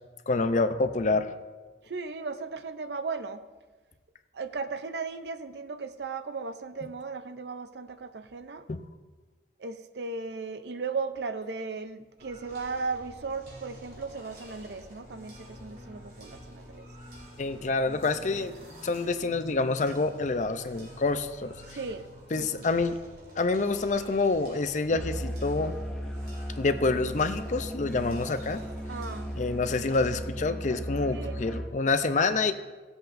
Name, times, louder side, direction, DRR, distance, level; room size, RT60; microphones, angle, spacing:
voice 1, 0.3-1.3 8.7-8.8 17.4-18.5 18.8-21.6 22.3-23.0 23.4-25.7 26.6-28.6 29.4-32.5, left 3 dB, 45° left, 10 dB, 0.5 m, -27 dB
voice 2, 1.9-3.4 4.3-8.7 9.6-16.9 21.6-22.1 22.4-22.5 28.9-29.3 31.1-31.4, right 4 dB, 75° right, 10 dB, 0.6 m, -36 dB
sound 1, 12.2-30.2, equal, 55° right, 3.3 m, -48 dB
Musical instrument, 24.9-31.8, equal, 5° left, 0.7 m, -36 dB
17.0 x 7.9 x 2.6 m, 1.3 s
head